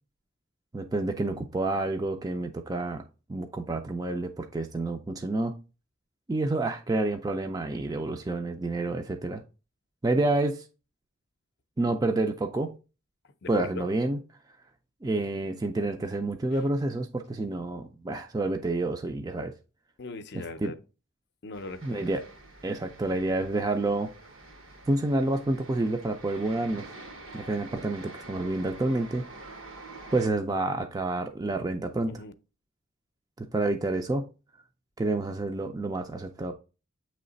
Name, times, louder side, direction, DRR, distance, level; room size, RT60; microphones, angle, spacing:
voice 1, 0.7-3.0 3.3-5.6 6.3-9.4 10.0-10.6 11.8-12.7 13.5-14.2 15.0-19.5 20.6-20.7 21.8-22.2 22.6-24.1 24.9-26.9 27.3-29.3 30.1-32.2 33.4-34.2 35.0-36.5, right 2 dB, 20° right, 0.3 m, -29 dB
voice 2, 13.2-13.9 16.5-16.7 20.0-20.8 21.4-22.1 32.1-32.3, left 2 dB, 55° left, 0.5 m, -40 dB
sound 1, 21.5-30.3, right 2 dB, 85° right, 1.2 m, -47 dB
7.7 x 3.2 x 3.9 m
head